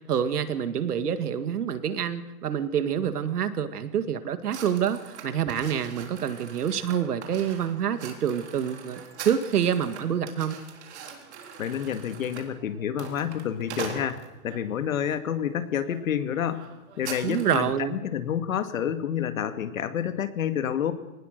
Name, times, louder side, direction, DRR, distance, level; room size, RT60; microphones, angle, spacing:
voice 1, 0.1-10.6 17.2-18.0, right 8 dB, 80° right, 10 dB, 2.1 m, -27 dB
sound 1, 4.5-14.6 15.2-15.5 15.8-16.0 16.2-17.7, right 6 dB, 45° right, 3.8 m, -42 dB
voice 2, 11.6-16.7 17.0-20.9, left 9 dB, 60° left, 10 dB, 2.0 m, -29 dB
22.0 x 19.0 x 6.6 m, 0.98 s
hypercardioid pair, 180°, 46 cm